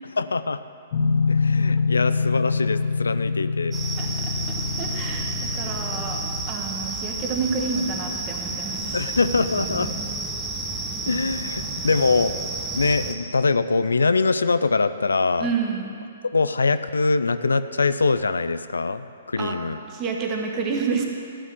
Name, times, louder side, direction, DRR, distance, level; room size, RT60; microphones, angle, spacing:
voice 1, 0.1-0.6 1.3-3.7 8.9-9.9 11.1-12.3 12.7-15.5 16.3-19.8, left 4 dB, 80° left, 13 dB, 0.4 m, -23 dB
sound 1, 0.9-6.5, left 4 dB, 55° left, 1.2 m, -25 dB
sound 2, 3.7-13.1, right 3 dB, 10° right, 1.1 m, -31 dB
voice 2, 4.0-4.3 4.8-6.2 6.5-9.0 15.4-16.0 19.4-19.6 19.9-21.0, right 5 dB, 30° right, 1 dB, 1.4 m, -29 dB
12.5 x 5.0 x 7.7 m, 2.4 s
figure-of-eight pair, 125°, 0 cm